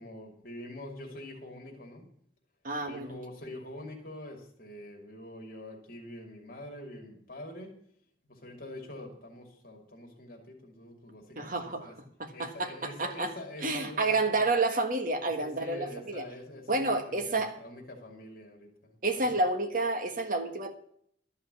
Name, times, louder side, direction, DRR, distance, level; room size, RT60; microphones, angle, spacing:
voice 1, 0.0-2.1 2.8-7.8 8.2-12.0 12.3-14.3 15.2-19.3, left 1 dB, 50° left, 0 dB, 2.8 m, -45 dB
voice 2, 2.6-3.1 11.3-11.9 12.2-13.3 13.6-16.2 16.7-17.5 19.0-20.7, right 2 dB, 45° right, 5 dB, 1.5 m, -29 dB
13.0 x 5.7 x 9.4 m, 0.64 s
head